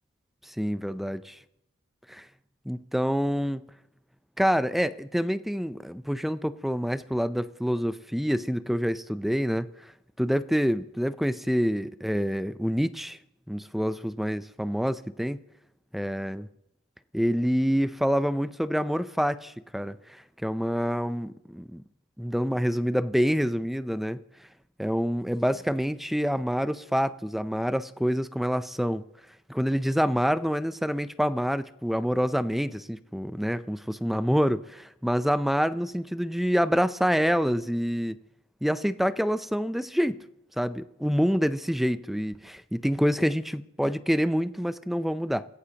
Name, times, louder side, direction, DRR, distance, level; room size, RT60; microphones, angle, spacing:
voice 1, 0.4-1.4 2.1-2.3 2.7-3.6 4.4-9.9 10.2-13.2 13.5-15.4 15.9-16.5 17.1-21.8 22.2-24.2 24.8-29.0 29.5-38.2 38.6-40.2 40.6-45.5, equal, ahead, 0.5 m, -27 dB
28.5 x 16.5 x 2.9 m
head